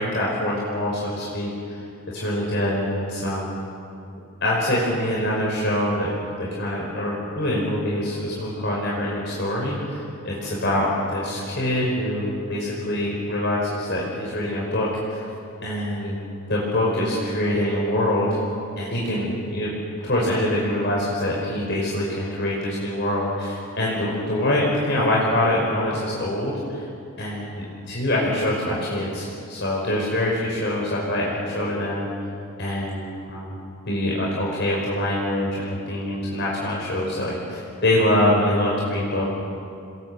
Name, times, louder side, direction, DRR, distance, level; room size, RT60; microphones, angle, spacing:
voice 1, 0.0-1.8 2.1-3.5 4.4-6.1 6.4-15.3 15.6-16.2 16.5-18.3 18.8-19.7 20.0-26.8 27.2-32.1 32.6-33.6 33.9-39.2, left 1 dB, 55° left, -4 dB, 5.4 m, -24 dB
28.0 x 21.5 x 8.0 m, 2.5 s
head